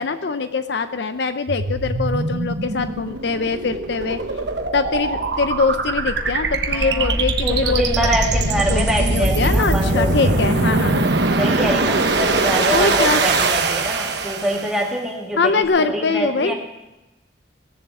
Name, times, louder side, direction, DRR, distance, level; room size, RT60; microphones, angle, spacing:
voice 1, 0.0-4.2 4.7-11.1 12.7-13.2 15.4-16.5, left 4 dB, 65° left, 10 dB, 0.6 m, -23 dB
sound 1, 1.5-14.9, right 3 dB, 60° right, 1.1 m, -21 dB
voice 2, 6.7-7.2 7.4-10.4 11.4-16.6, right 1 dB, ahead, -2 dB, 2.1 m, -25 dB
18.0 x 7.2 x 7.2 m, 1.0 s
head